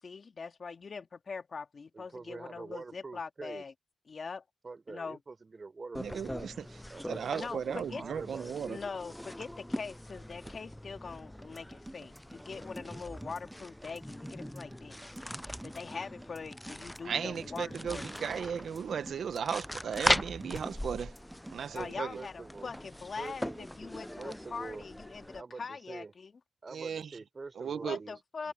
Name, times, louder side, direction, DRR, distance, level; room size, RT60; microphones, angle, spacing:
voice 1, 0.0-3.7 4.1-4.4 4.9-5.2 7.3-8.0 8.7-15.2 15.6-18.1 21.7-26.3 27.8-28.5, left 5 dB, 50° left, 2.3 m, -42 dB
voice 2, 1.9-3.6 4.6-6.5 6.9-8.5 22.1-22.7 23.2-23.7 24.2-24.8 25.3-26.1 26.6-28.1 28.4-28.5, right 3 dB, 40° right, 5.2 m, -45 dB
sound 1, 5.9-25.4, left 1 dB, 10° left, 0.4 m, -40 dB
voice 3, 5.9-8.8 17.0-21.2 21.5-22.2 26.7-27.2 27.5-28.0, right 7 dB, 75° right, 1.2 m, -36 dB
sound 2, 11.4-22.3, right 1 dB, 15° right, 1.3 m, -49 dB
cardioid pair, 60°, 0 cm